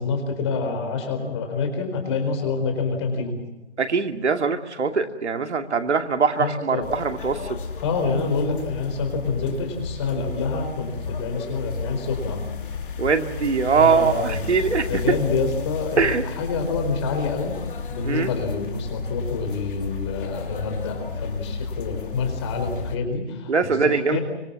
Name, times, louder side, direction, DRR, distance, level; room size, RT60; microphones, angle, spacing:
voice 1, 0.0-3.4 6.4-6.9 7.8-12.4 13.7-14.5 14.8-17.6 17.9-24.2, left 4 dB, 25° left, 5 dB, 4.5 m, -27 dB
voice 2, 3.8-7.4 13.0-14.9 16.0-16.2 18.0-18.3 23.5-24.2, right 5 dB, 75° right, 6 dB, 2.5 m, -22 dB
sound 1, 6.8-23.0, left 5 dB, 50° left, 2.9 m, -33 dB
25.5 x 22.0 x 7.4 m, 1.0 s
hypercardioid pair, 165°, 34 cm